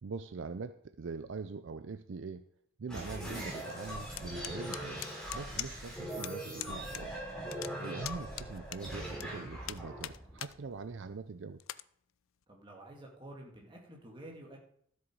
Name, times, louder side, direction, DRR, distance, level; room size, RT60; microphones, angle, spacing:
voice 1, 0.0-2.5 2.8-7.2 7.8-11.6, right 4 dB, 65° right, 11 dB, 0.5 m, -43 dB
sound 1, 2.9-11.1, equal, 5° left, 3.8 m, -41 dB
sound 2, 4.2-5.9 6.2-6.3 6.6-7.0 7.3-9.3 9.7-10.5 11.0-11.1 11.6-11.8, left 14 dB, 75° left, 0.4 m, -41 dB
voice 2, 12.5-14.6, right 1 dB, 25° right, -1 dB, 2.4 m, -50 dB
13.0 x 7.7 x 4.7 m, 0.66 s
head